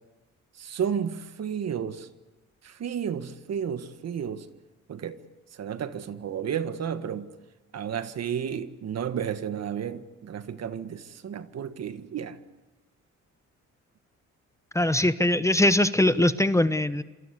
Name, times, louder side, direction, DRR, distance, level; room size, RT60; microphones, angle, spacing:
voice 1, 0.6-2.1 2.6-4.5 4.9-5.2 5.5-7.3 7.7-12.4, right 8 dB, 55° right, 1.7 m, -32 dB
voice 2, 14.7-17.0, left 1 dB, 10° left, 1.0 m, -21 dB
27.0 x 25.0 x 8.4 m
cardioid pair, 90°, 30 cm